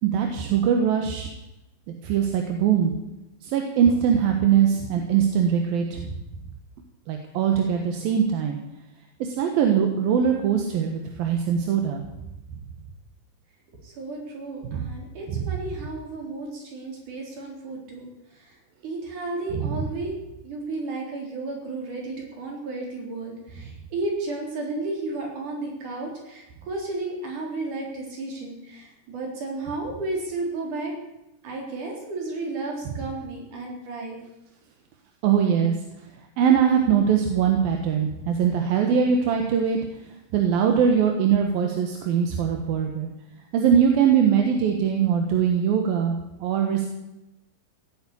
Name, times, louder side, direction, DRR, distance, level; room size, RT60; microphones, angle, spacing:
voice 1, 0.0-1.3 1.9-2.9 3.4-6.2 7.1-8.6 9.2-12.0 14.7-14.9 15.3-15.4 19.5-19.9 35.2-35.8 36.4-39.8 40.3-43.1 43.5-46.9, right 8 dB, 80° right, 3 dB, 3.1 m, -22 dB
voice 2, 13.8-18.1 18.3-18.5 18.8-20.1 20.4-30.9 31.4-34.2, right 2 dB, 60° right, 0 dB, 5.3 m, -33 dB
17.0 x 9.4 x 8.5 m, 0.93 s
omnidirectional pair, 4.1 m